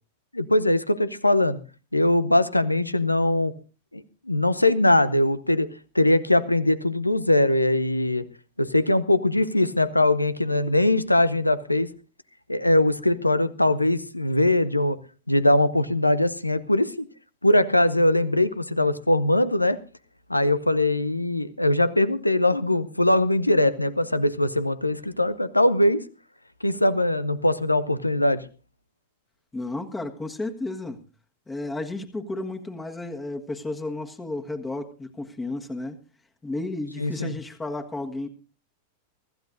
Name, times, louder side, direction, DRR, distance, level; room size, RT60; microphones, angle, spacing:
voice 1, 0.3-1.6 1.9-3.5 3.9-5.7 5.9-8.2 8.6-11.9 12.5-15.0 15.3-17.1 17.4-19.8 20.3-26.0 26.6-28.4 37.0-37.3, left 1 dB, 85° left, 15 dB, 0.8 m, -21 dB
voice 2, 29.5-31.0 31.5-36.0 36.4-38.3, left 2 dB, 15° left, 4 dB, 1.6 m, -32 dB
24.0 x 14.5 x 2.6 m, 0.35 s
figure-of-eight pair, 90°, 0 cm